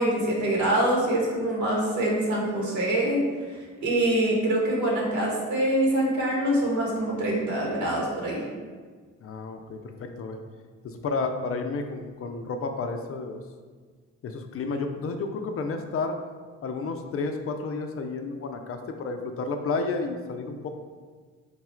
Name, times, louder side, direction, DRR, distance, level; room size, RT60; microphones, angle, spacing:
voice 1, 0.0-3.2 3.8-8.4, right 1 dB, 70° right, -3 dB, 1.3 m, -24 dB
voice 2, 9.2-10.4 10.8-13.4 14.2-16.2 16.6-20.7, left 3 dB, 50° left, 5 dB, 0.4 m, -31 dB
3.9 x 2.4 x 4.3 m, 1.5 s
cardioid pair, 90°, 30 cm